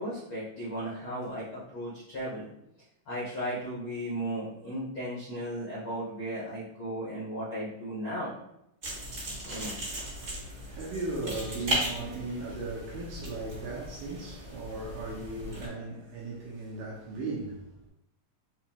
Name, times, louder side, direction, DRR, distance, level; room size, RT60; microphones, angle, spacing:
voice 1, 0.0-2.5 3.1-8.3 9.4-9.8, equal, 75° left, 1.2 m, -35 dB
sound 1, 8.8-15.7, right 1 dB, 35° right, 1.2 m, -37 dB
voice 2, 10.1-17.9, right 2 dB, 80° right, 2.3 m, -37 dB
6.7 x 2.4 x 2.8 m
omnidirectional pair, 4.0 m